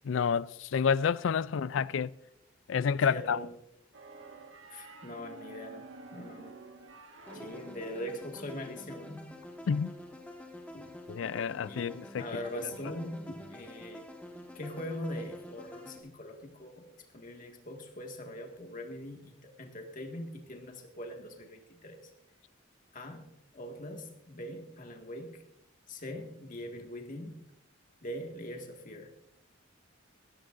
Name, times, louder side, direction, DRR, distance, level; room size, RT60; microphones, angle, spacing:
voice 1, 0.1-2.1 2.7-3.4 9.7-9.9 11.1-12.2, left 6 dB, 70° left, 0.4 m, -29 dB
voice 2, 1.6-1.9 3.1-3.5 4.7-6.6 7.3-9.3 10.7-10.9 11.6-14.1 14.6-22.1 22.9-23.3 23.5-25.4 25.9-27.3 28.0-29.1, left 1 dB, 45° left, 1.9 m, -42 dB
sound 1, 3.9-8.7, right 3 dB, 75° right, 1.6 m, -50 dB
sound 2, 7.3-16.0, left 1 dB, 5° left, 1.3 m, -48 dB
17.0 x 14.0 x 2.6 m
head